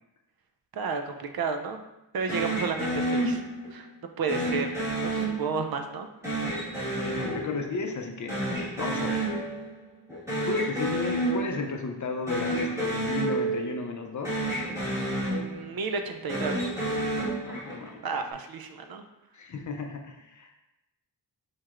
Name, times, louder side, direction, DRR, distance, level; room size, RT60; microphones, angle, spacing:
voice 1, 0.7-1.8 2.1-3.4 3.7-3.9 4.2-6.1 15.3-16.7 18.0-19.0, right 5 dB, 60° right, 6 dB, 0.5 m, -32 dB
sound 1, 2.3-3.8 4.3-5.8 6.2-8.0 8.3-9.8 10.1-11.8 12.2-14.0 14.2-15.8 16.2-18.0, right 1 dB, 5° right, 1.5 m, -30 dB
voice 2, 7.0-8.4 8.8-9.3 10.5-14.5 17.4-18.0 19.3-20.6, left 4 dB, 45° left, 4 dB, 0.5 m, -34 dB
4.6 x 4.4 x 2.4 m, 0.93 s
wide cardioid pair, 155°, 42 cm